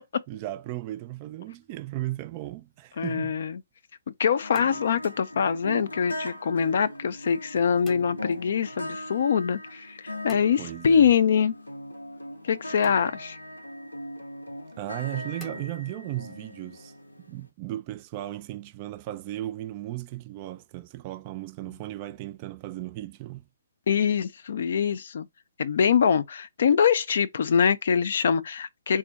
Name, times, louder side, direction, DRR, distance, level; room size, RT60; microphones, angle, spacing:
voice 1, 0.3-3.4 10.6-11.1 14.8-16.9 17.3-23.5, right 15 dB, 35° right, 0.3 m, -36 dB
sound 1, 1.2-1.7 4.3-5.5 7.9-8.4 10.3-11.2 12.8-13.5 15.4-16.3, left 1 dB, 10° left, 0.6 m, -50 dB
voice 2, 3.0-3.6 4.2-11.5 12.5-13.4 23.9-25.3 25.6-29.0, left 7 dB, 55° left, 0.4 m, -24 dB
sound 2, 4.4-17.4, left 1 dB, 90° left, 0.7 m, -40 dB
3.6 x 2.0 x 3.9 m
figure-of-eight pair, 130°, 0 cm